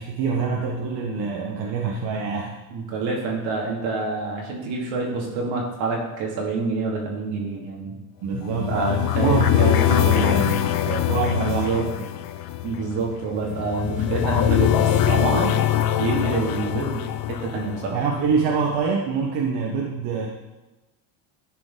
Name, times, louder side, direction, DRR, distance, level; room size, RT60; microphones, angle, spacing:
voice 1, 0.0-2.5 8.2-8.9 9.2-11.7 17.9-20.3, right 5 dB, 60° right, -1 dB, 1.2 m, -25 dB
voice 2, 2.7-8.0 8.7-10.3 11.4-11.9 12.6-15.5 16.0-18.0, right 4 dB, 80° right, -1 dB, 2.5 m, -27 dB
sound 1, 8.3-18.4, left 12 dB, 50° left, 0.7 m, -23 dB
11.5 x 5.0 x 3.8 m, 1.1 s
cardioid pair, 100°, 45 cm